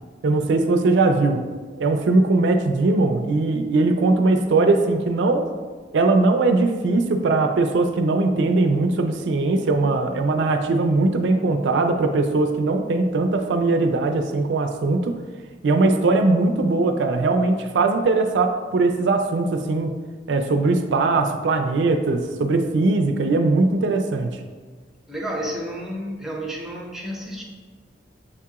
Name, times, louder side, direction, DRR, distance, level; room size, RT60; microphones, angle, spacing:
voice 1, 0.2-1.5 1.8-5.5 5.9-15.2 15.6-19.9 20.3-24.4, right 3 dB, 75° right, 5 dB, 0.4 m, -20 dB
voice 2, 25.1-27.4, equal, ahead, -2 dB, 0.5 m, -31 dB
7.1 x 2.8 x 2.4 m, 1.4 s
head